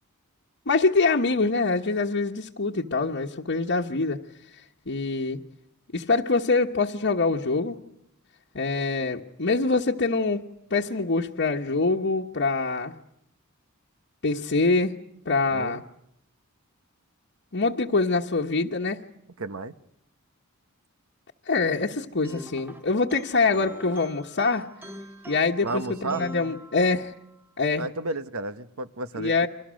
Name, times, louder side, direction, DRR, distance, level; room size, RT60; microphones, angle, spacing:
voice 1, 0.7-4.2 4.9-5.4 5.9-7.8 8.5-12.9 14.2-14.9 15.2-15.8 17.5-19.0 21.5-24.7 25.3-27.1 27.6-27.9 29.2-29.5, left 3 dB, 55° left, -2 dB, 1.2 m, -24 dB
voice 2, 15.5-15.8 19.4-19.7 25.6-26.3 27.8-29.5, right 3 dB, 75° right, 12 dB, 1.1 m, -32 dB
sound 1, 22.2-27.3, equal, 10° right, 1.0 m, -44 dB
30.0 x 25.0 x 6.4 m, 0.79 s
head